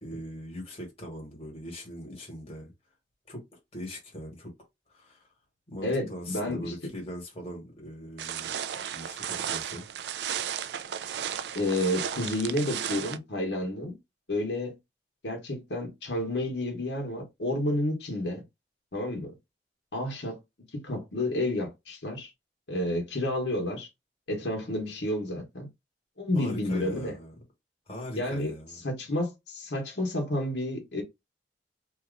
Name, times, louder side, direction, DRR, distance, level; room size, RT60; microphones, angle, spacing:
voice 1, 0.0-2.7 3.3-3.4 3.7-4.5 4.9-5.3 5.7-8.5 8.9-9.8 26.3-27.3 27.9-28.8, equal, 35° left, 1.4 m, -40 dB
voice 2, 5.8-6.7 11.5-13.9 14.3-14.8 15.2-18.4 18.9-19.3 19.9-20.4 20.7-22.3 22.7-23.9 24.3-25.7 26.2-27.1 28.1-28.5 28.8-31.0, left 1 dB, 80° left, 1.2 m, -30 dB
sound 1, 8.2-13.2, right 9 dB, 70° right, 0.3 m, -34 dB
2.8 x 2.4 x 3.7 m
head